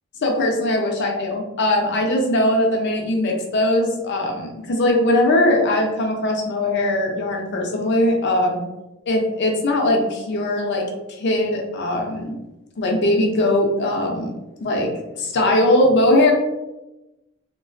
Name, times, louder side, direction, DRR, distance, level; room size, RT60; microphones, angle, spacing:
voice 1, 0.2-8.6 9.1-10.8 11.1-12.4 12.8-14.3 14.6-16.3, left 1 dB, 55° left, 1 dB, 0.5 m, -20 dB
2.3 x 2.2 x 2.4 m, 1.0 s
head